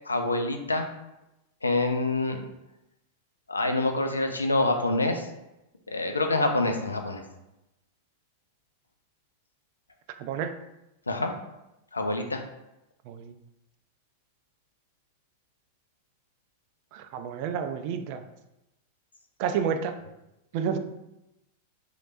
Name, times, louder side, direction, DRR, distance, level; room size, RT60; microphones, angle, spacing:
voice 1, 0.1-0.9 1.6-2.4 3.5-5.3 5.9-7.2 11.1-11.3 11.9-12.4, left 2 dB, 85° left, 5 dB, 0.4 m, -26 dB
voice 2, 10.2-10.6 13.1-13.3 16.9-18.2 19.4-20.0 20.5-20.8, right 7 dB, 50° right, 9 dB, 0.3 m, -30 dB
3.1 x 2.9 x 2.5 m, 0.92 s
figure-of-eight pair, 95°, 0 cm